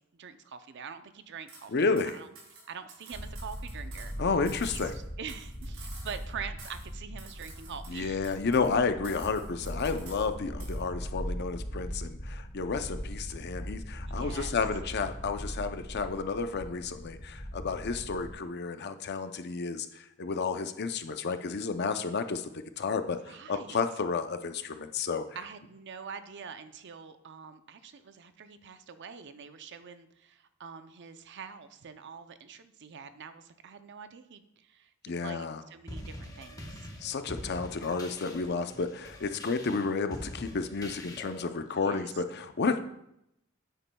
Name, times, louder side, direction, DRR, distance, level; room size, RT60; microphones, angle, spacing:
voice 1, 0.1-2.3 2.7-4.1 4.6-8.4 14.1-14.6 23.2-23.8 25.4-36.9 41.7-42.2, right 6 dB, 55° right, 10 dB, 0.6 m, -45 dB
sound 1, 1.5-1.7 2.0-4.2 4.4-6.3 6.6-6.9 7.2-8.8 9.0-10.3 10.6-10.8, right 3 dB, 80° right, 2.9 m, -51 dB
voice 2, 1.7-2.2 4.2-5.0 7.9-22.5 22.8-25.3 35.0-35.6 37.0-42.8, left 4 dB, 55° left, 9 dB, 0.6 m, -31 dB
sound 2, 3.1-18.3, equal, 35° left, 1.3 m, -40 dB
sound 3, 35.9-41.5, left 1 dB, 15° left, 0.9 m, -44 dB
9.3 x 9.0 x 2.3 m, 0.79 s
head